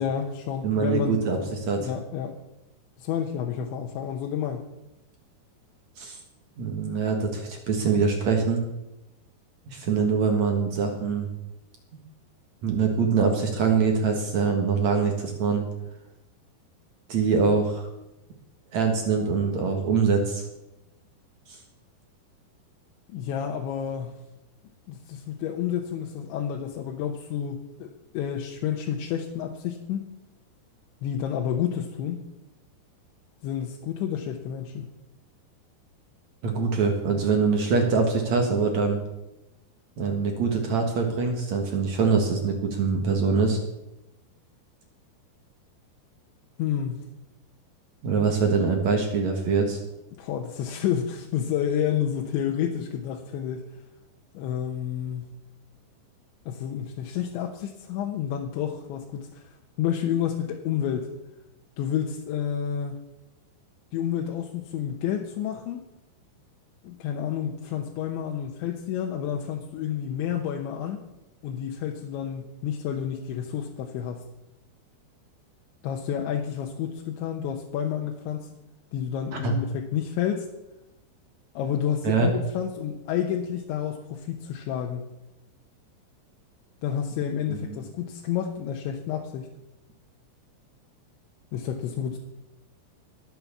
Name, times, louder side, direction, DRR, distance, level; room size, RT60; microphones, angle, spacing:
voice 1, 0.0-1.2 1.8-2.4 3.0-4.7 23.1-24.1 24.9-30.1 31.0-32.2 33.4-34.9 46.6-47.0 50.2-53.7 54.4-55.3 56.5-59.5 59.8-61.1 61.8-63.0 63.9-65.8 66.8-71.1 71.4-74.2 75.8-78.5 78.9-80.5 81.6-85.1 86.8-89.5 91.5-92.2, left 9 dB, 90° left, 1 dB, 3.4 m, -30 dB
voice 2, 0.6-1.8 6.0-6.2 6.6-8.6 9.7-11.3 12.6-15.6 17.1-17.9 18.7-20.5 21.5-21.6 36.4-39.0 40.0-43.6 48.0-49.8 79.4-79.5 82.0-82.3 87.5-87.8, right 5 dB, 55° right, 3 dB, 2.2 m, -24 dB
20.0 x 7.7 x 7.2 m, 0.95 s
omnidirectional pair, 5.1 m